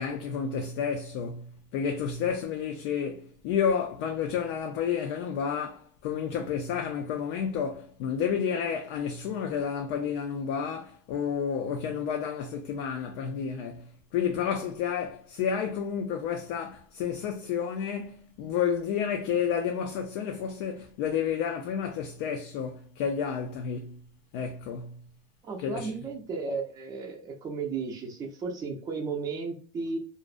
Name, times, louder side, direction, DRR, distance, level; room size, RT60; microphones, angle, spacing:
voice 1, 0.0-24.0 24.3-25.0 25.6-25.9, left 7 dB, 70° left, 0.4 m, -31 dB
voice 2, 25.4-30.0, right 4 dB, 20° right, 0.4 m, -34 dB
2.5 x 2.0 x 2.4 m
cardioid pair, 150°, 17 cm